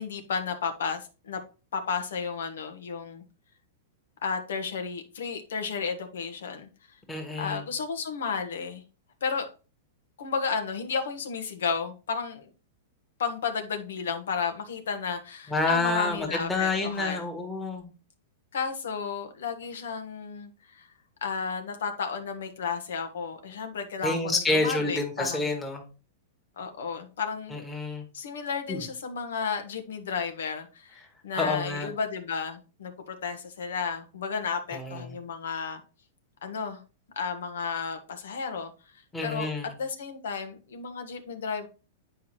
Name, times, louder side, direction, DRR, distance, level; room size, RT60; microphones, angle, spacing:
voice 1, 0.0-1.4 1.7-3.2 4.2-6.7 7.4-8.8 9.2-9.4 10.2-12.5 13.2-17.3 18.5-20.9 21.2-25.5 26.6-27.6 28.1-35.8 36.4-36.8 37.1-38.7 39.2-39.5 39.8-41.7, left 5 dB, 90° left, 6 dB, 1.4 m, -33 dB
voice 2, 7.1-7.6 15.5-17.9 24.0-25.8 27.5-28.0 28.7-28.8 31.4-31.9 34.7-35.2 39.1-39.7, left 3 dB, 5° left, 1 dB, 1.5 m, -28 dB
9.2 x 4.7 x 3.2 m, 0.33 s
supercardioid pair, 170°, 0 cm